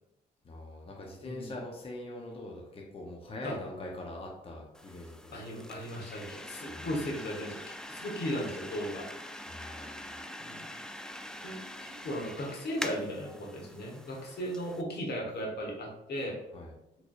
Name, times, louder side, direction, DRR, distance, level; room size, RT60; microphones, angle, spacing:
voice 1, 0.4-5.4 6.7-6.9 9.5-10.2 16.5-16.7, left 1 dB, 30° left, -1 dB, 0.7 m, -43 dB
sound 1, 4.7-14.8, left 1 dB, 5° left, 0.4 m, -44 dB
voice 2, 5.3-9.1 10.4-10.7 11.4-16.4, equal, 65° left, -1 dB, 1.1 m, -37 dB
3.7 x 3.2 x 2.4 m, 0.87 s
cardioid pair, 70°, 18 cm